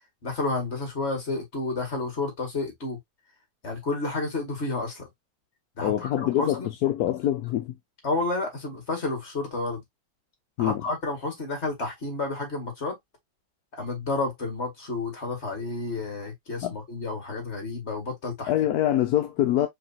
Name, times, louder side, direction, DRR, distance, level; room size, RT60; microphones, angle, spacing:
voice 1, 0.2-3.0 3.6-5.1 5.8-6.7 8.0-9.8 10.6-13.0 13.7-18.5, left 3 dB, 35° left, 2.3 m, -30 dB
voice 2, 5.8-7.8 10.6-10.8 16.6-16.7 18.5-19.7, left 12 dB, 70° left, 0.9 m, -25 dB
4.9 x 3.4 x 2.8 m
omnidirectional pair, 2.1 m